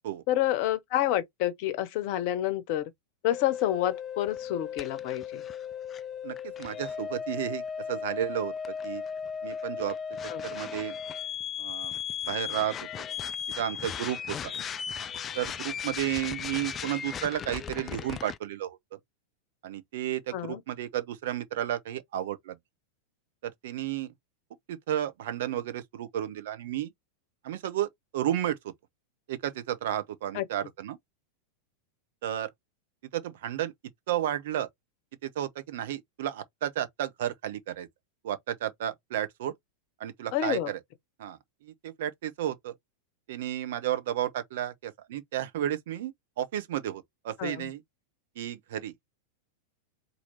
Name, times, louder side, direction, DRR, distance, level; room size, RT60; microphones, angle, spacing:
voice 1, 0.3-2.9 3.2-5.4 10.3-10.4 20.3-20.6 30.3-30.4 40.3-40.7 47.4-47.6, left 13 dB, 45° left, 0.8 m, -28 dB
sound 1, 3.3-18.4, left 7 dB, 25° left, 0.4 m, -36 dB
voice 2, 6.2-8.5 8.8-9.0 9.4-10.0 10.4-10.9 11.6-11.9 12.3-12.9 13.6-14.5 15.3-18.8 19.6-22.6 23.4-24.1 24.7-26.9 27.4-28.7 29.3-31.0 32.2-32.5 33.1-33.7 34.1-34.7 35.2-37.9 38.2-39.5 40.0-40.8 41.2-42.7 43.3-47.8 48.4-48.9, right 11 dB, 55° right, 0.8 m, -32 dB
4.3 x 2.7 x 4.3 m
figure-of-eight pair, 90°, 0 cm